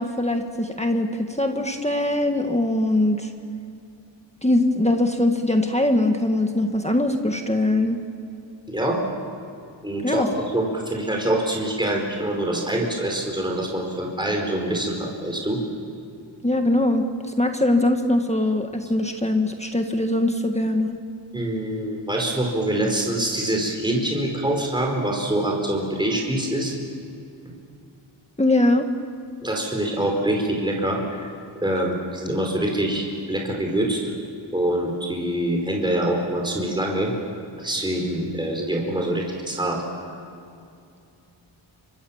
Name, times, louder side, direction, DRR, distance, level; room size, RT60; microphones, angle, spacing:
voice 1, 0.0-3.3 4.4-8.0 10.0-10.3 16.4-21.0 28.4-28.9, left 1 dB, 15° left, 4 dB, 1.7 m, -22 dB
voice 2, 8.7-9.0 9.8-10.3 10.5-15.6 21.3-26.7 29.4-31.3 31.6-34.1 34.5-37.1 37.6-39.8, right 1 dB, 10° right, 0 dB, 4.8 m, -25 dB
30.0 x 25.0 x 7.3 m, 2.6 s
wide cardioid pair, 115°, 46 cm